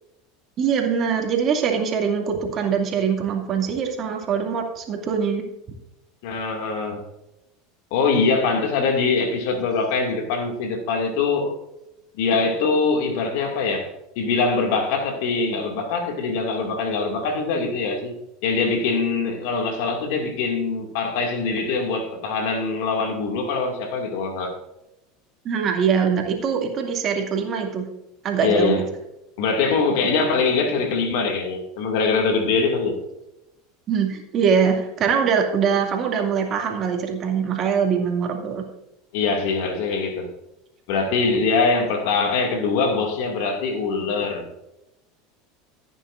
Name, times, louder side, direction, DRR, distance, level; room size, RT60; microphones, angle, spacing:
voice 1, 0.6-5.4 25.4-27.9 28.2-28.8 33.9-38.6, right 6 dB, 40° right, 2.3 m, -23 dB
voice 2, 6.2-7.0 7.9-11.5 12.2-13.9 14.2-18.2 18.4-24.5 28.4-28.8 29.4-33.0 39.1-40.3 40.9-44.5, left 4 dB, 65° left, 2.3 m, -23 dB
15.5 x 9.2 x 2.6 m
hypercardioid pair, 85°, 0 cm